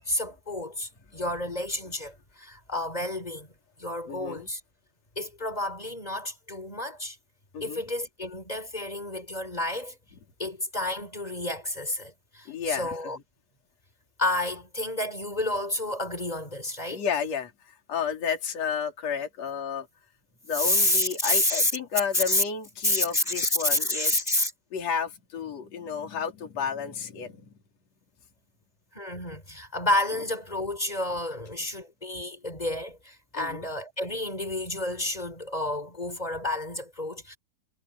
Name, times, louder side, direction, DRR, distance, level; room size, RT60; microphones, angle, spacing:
voice 1, 0.0-4.6 5.1-7.2 7.6-10.0 10.4-13.2 14.2-17.0 20.6-21.7 22.1-22.4 22.8-24.5 28.9-37.4, left 1 dB, 10° left, 3.4 m, -30 dB
voice 2, 4.1-4.5 7.5-7.8 12.5-13.1 16.9-19.9 20.5-24.3 24.7-27.5 33.3-33.6, left 7 dB, 40° left, 4.6 m, -32 dB
omnidirectional pair, 4.7 m